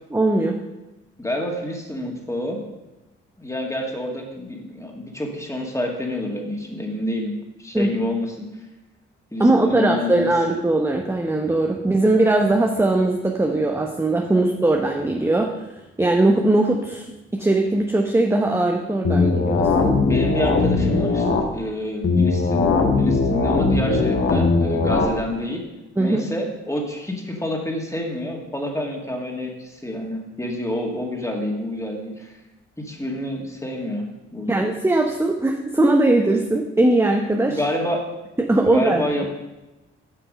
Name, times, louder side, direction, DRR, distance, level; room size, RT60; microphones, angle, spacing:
voice 1, 0.1-0.6 7.7-7.9 9.4-15.5 16.0-20.0 26.0-26.2 34.5-37.6 38.4-39.1, right 2 dB, 10° right, 2 dB, 0.8 m, -20 dB
voice 2, 1.2-2.6 3.4-8.5 9.3-10.3 14.3-14.4 20.0-25.6 26.0-32.4 32.8-34.1 34.3-34.7 37.5-38.0 38.6-39.3, left 1 dB, 10° left, 0 dB, 2.1 m, -28 dB
sound 1, 19.0-21.4 22.0-25.0, left 3 dB, 45° left, 1.4 m, -19 dB
8.1 x 5.8 x 5.2 m, 1.0 s
hypercardioid pair, 40°, 30 cm